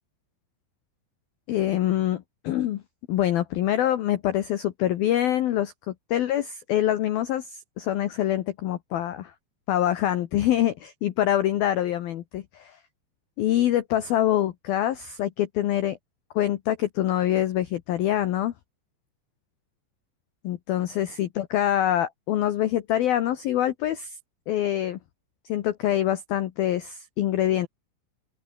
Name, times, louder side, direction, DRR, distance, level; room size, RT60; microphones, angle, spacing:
voice 1, 1.5-2.8 3.1-9.3 9.7-12.8 13.4-16.0 16.4-18.5 20.4-24.2 24.5-25.0 25.5-27.7, left 12 dB, 75° left, 2.2 m, -25 dB
open air
omnidirectional pair, 6.0 m